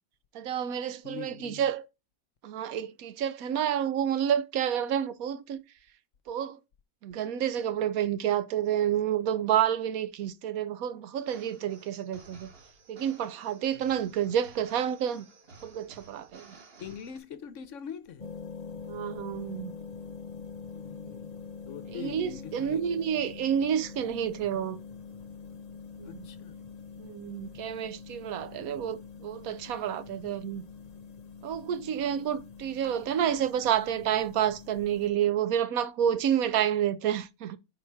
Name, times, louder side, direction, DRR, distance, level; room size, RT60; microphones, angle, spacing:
voice 1, 0.3-1.9 2.4-5.6 6.3-6.6 7.0-12.5 12.9-15.3 15.6-16.5 18.9-19.7 21.0-21.2 21.9-24.8 26.0-26.3 27.0-30.6 31.4-37.6, right 9 dB, 85° right, 1.2 m, -29 dB
voice 2, 1.0-1.7 13.7-13.8 16.8-18.3 20.7-21.3 21.7-22.8 26.0-26.5, left 7 dB, 65° left, 1.0 m, -43 dB
sound 1, 11.2-17.2, right 3 dB, 45° right, 1.4 m, -54 dB
sound 2, 18.2-35.1, left 5 dB, 45° left, 0.5 m, -44 dB
5.6 x 4.3 x 4.7 m
omnidirectional pair, 1.5 m